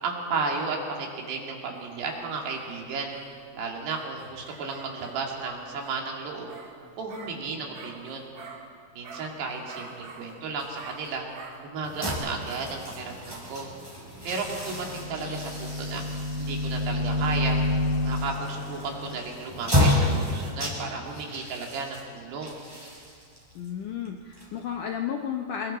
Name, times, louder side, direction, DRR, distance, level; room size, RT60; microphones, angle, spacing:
voice 1, 0.0-3.1 3.6-6.5 7.0-8.3 8.9-11.2 11.6-13.7 14.2-16.0 16.4-17.6 18.0-22.6, right 4 dB, 80° right, 0 dB, 4.6 m, -33 dB
sound 1, 1.7-8.8 9.0-12.1, right 4 dB, 55° right, 3.2 m, -47 dB
sound 2, 11.8-24.9, left 1 dB, 5° right, 5.3 m, -31 dB
sound 3, 14.4-19.2, left 2 dB, 55° left, 3.2 m, -29 dB
voice 2, 23.6-25.8, left 8 dB, 75° left, 2 dB, 1.9 m, -32 dB
28.0 x 22.0 x 4.3 m, 2.2 s
omnidirectional pair, 4.8 m